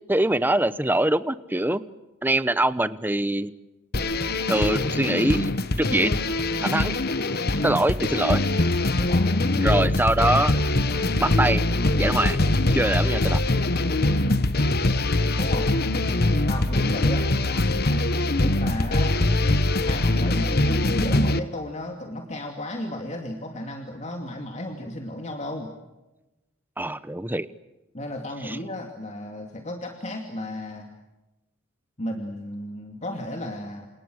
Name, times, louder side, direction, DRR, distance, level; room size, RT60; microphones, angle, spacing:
voice 1, 0.1-1.8 2.2-3.5 4.5-5.5 5.8-6.1 6.6-6.9 7.6-8.5 9.5-10.6 11.2-11.6 12.0-12.4 12.7-13.4 26.8-27.5 28.4-28.6, right 1 dB, 10° right, 14 dB, 0.9 m, -23 dB
sound 1, 3.9-21.4, left 2 dB, 50° left, 1.3 m, -23 dB
voice 2, 8.9-9.5 14.1-14.4 15.3-15.8 16.5-17.3 18.4-19.2 19.8-25.7 27.9-30.9 32.0-33.9, left 1 dB, 35° left, 3 dB, 2.6 m, -33 dB
29.0 x 27.5 x 6.5 m, 1.0 s
head